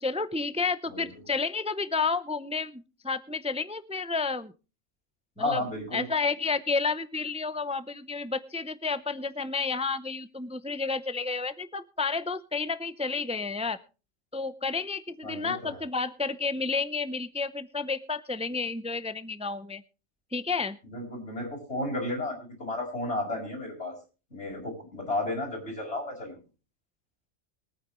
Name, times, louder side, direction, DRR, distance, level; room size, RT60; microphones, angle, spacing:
voice 1, 0.0-4.5 5.4-5.6 5.9-13.8 14.3-19.8 20.3-20.8, left 4 dB, 10° right, 13 dB, 0.4 m, -31 dB
voice 2, 5.4-6.1 15.2-15.8 20.9-23.9 24.3-26.3, left 2 dB, 60° left, -2 dB, 5.8 m, -33 dB
23.5 x 9.1 x 3.1 m, 0.33 s
omnidirectional pair, 1.3 m